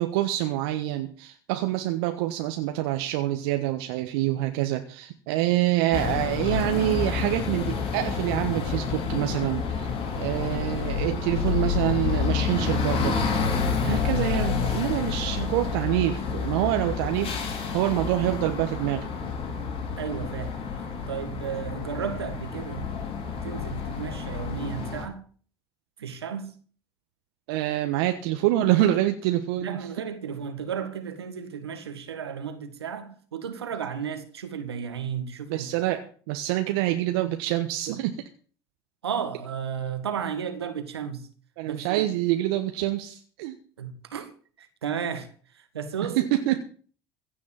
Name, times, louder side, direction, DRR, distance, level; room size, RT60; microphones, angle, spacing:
voice 1, 0.0-9.9 10.1-13.2 13.8-19.1 27.5-29.9 35.5-38.2 41.6-43.6 46.2-46.6, right 14 dB, 70° right, 1.3 m, -26 dB
sound 1, 5.9-25.0, left 6 dB, 50° left, 4.9 m, -29 dB
voice 2, 20.0-20.5 21.1-22.9 23.4-25.2 26.0-26.5 29.6-35.7 39.0-41.3 41.7-42.1 43.8-44.3 44.6-45.3 45.6-46.3, right 7 dB, 90° right, 1.9 m, -33 dB
16.0 x 6.4 x 9.0 m
hypercardioid pair, 70°, 13 cm